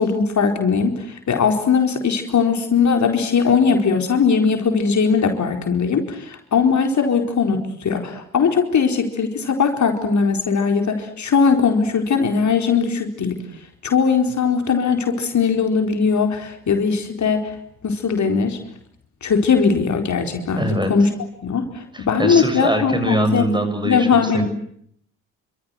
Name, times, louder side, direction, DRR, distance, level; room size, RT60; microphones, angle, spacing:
voice 1, 0.0-13.4 13.8-17.5 17.8-18.6 19.2-21.1 21.4-23.4 23.8-24.5, left 5 dB, 40° left, 4 dB, 4.4 m, -19 dB
voice 2, 20.6-20.9 21.9-24.5, right 1 dB, 10° right, 9 dB, 7.3 m, -22 dB
29.0 x 26.0 x 7.9 m, 0.68 s
figure-of-eight pair, 50°, 42 cm